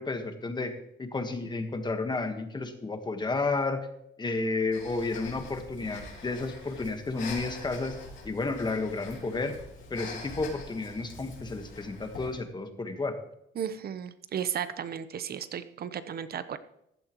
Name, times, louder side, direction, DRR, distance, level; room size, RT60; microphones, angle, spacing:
voice 1, 0.0-3.9 4.2-8.0 8.2-9.6 9.9-13.2, left 3 dB, 20° left, 7 dB, 1.4 m, -32 dB
Breathing, 4.7-12.4, left 3 dB, 65° left, 4.0 m, -44 dB
voice 2, 13.6-16.6, right 8 dB, 50° right, 13 dB, 0.8 m, -34 dB
15.0 x 11.0 x 3.0 m, 0.79 s
cardioid pair, 125°, 21 cm